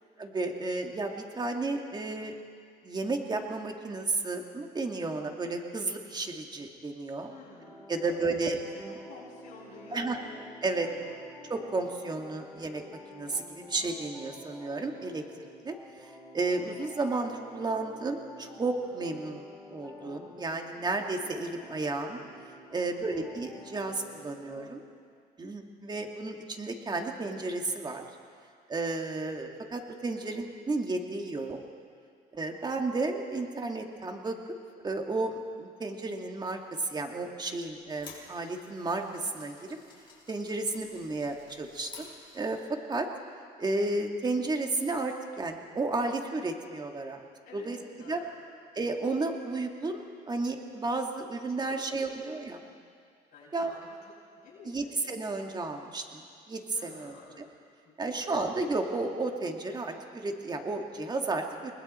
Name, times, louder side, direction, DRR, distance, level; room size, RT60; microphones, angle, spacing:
voice 1, 0.2-2.4 2.8-7.3 7.9-9.0 9.9-10.2 10.6-10.9 11.5-12.8 13.1-19.4 19.7-22.2 22.7-24.8 25.4-28.0 28.7-31.6 32.3-34.4 34.8-39.8 40.3-42.6 42.9-43.1 43.6-47.2 47.5-47.8 48.0-48.2 48.7-52.6 53.5-53.7 54.7-57.5 58.0-61.7, right 3 dB, 25° right, 3 dB, 2.1 m, -33 dB
voice 2, 7.3-7.8 8.0-8.6 9.1-10.4 10.8-11.3 22.9-23.3 47.5-48.4 51.7-52.1 53.3-54.0 54.4-55.0 56.7-57.4 57.8-58.4, left 3 dB, 60° left, -6 dB, 7.8 m, -51 dB
sound 1, 7.6-24.7, left 1 dB, ahead, 7.8 m, -50 dB
sound 2, 37.7-42.8, left 4 dB, 30° left, 5.5 m, -53 dB
30.0 x 20.0 x 4.4 m, 2.2 s
cardioid pair, 110°, 17 cm